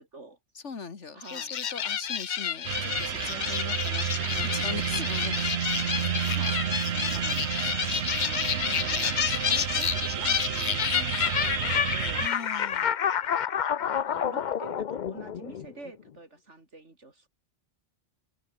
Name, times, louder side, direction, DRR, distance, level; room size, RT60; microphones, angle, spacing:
voice 1, 0.0-0.4 1.1-1.6 6.3-7.5 8.6-9.2 9.5-12.2 14.1-17.3, right 2 dB, 85° right, 4.1 m, -47 dB
voice 2, 0.6-5.4 5.8-6.1 12.2-12.9, left 5 dB, 90° left, 2.2 m, -40 dB
sound 1, 1.3-15.9, left 8 dB, 50° left, 0.7 m, -29 dB
sound 2, 2.6-12.3, right 9 dB, 65° right, 1.1 m, -30 dB
omnidirectional pair, 1.2 m